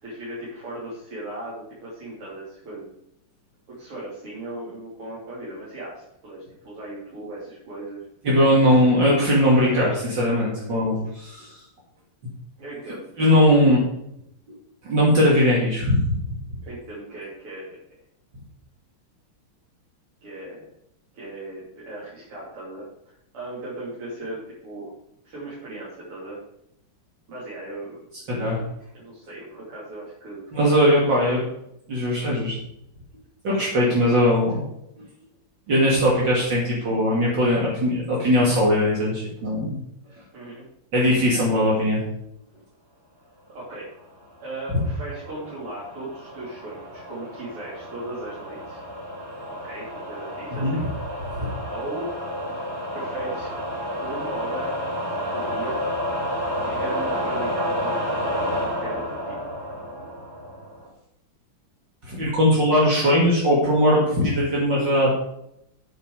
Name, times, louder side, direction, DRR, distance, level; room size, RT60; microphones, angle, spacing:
voice 1, 0.0-2.9 3.7-8.0 12.6-13.0 16.6-17.8 20.2-20.6 21.1-24.9 25.2-26.4 27.3-28.5 29.0-31.0 40.3-40.7 43.5-43.9 44.4-48.8 49.5-50.9 51.7-52.1 52.9-53.5 54.0-54.7 55.3-55.8 56.6-57.9 58.4-59.4, right 2 dB, 85° right, -10 dB, 4.5 m, -37 dB
voice 2, 8.2-11.6 13.2-13.8 14.8-16.1 28.3-28.7 30.5-31.4 31.9-32.6 33.4-34.6 35.7-39.8 40.9-42.0 50.6-50.8 51.3-51.5 62.0-65.2, equal, 55° right, -5 dB, 2.9 m, -20 dB
sound 1, 44.4-60.9, equal, 10° right, 4.3 m, -30 dB
9.1 x 9.0 x 4.9 m, 0.78 s
omnidirectional pair, 2.4 m